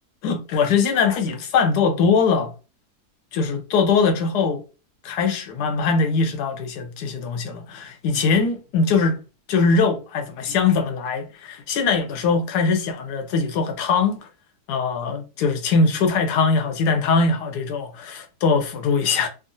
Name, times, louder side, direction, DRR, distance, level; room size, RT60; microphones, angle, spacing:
voice 1, 0.2-2.5 3.3-4.6 5.0-9.2 9.5-14.3 14.7-19.3, left 4 dB, 80° left, 1.2 m, -21 dB
3.6 x 2.1 x 2.5 m
omnidirectional pair, 1.7 m